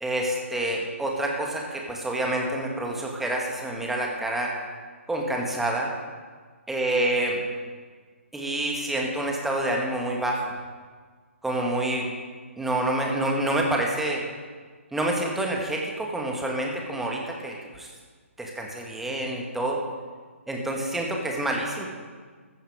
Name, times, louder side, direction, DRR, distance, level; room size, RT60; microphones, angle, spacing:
voice 1, 0.0-4.5 5.1-5.9 6.7-7.4 8.3-10.5 11.4-12.0 12.6-14.2 14.9-17.9 18.4-19.8 20.5-21.9, right 1 dB, 5° right, -1 dB, 2.0 m, -27 dB
15.0 x 13.5 x 5.0 m, 1.6 s
figure-of-eight pair, 140°, 7 cm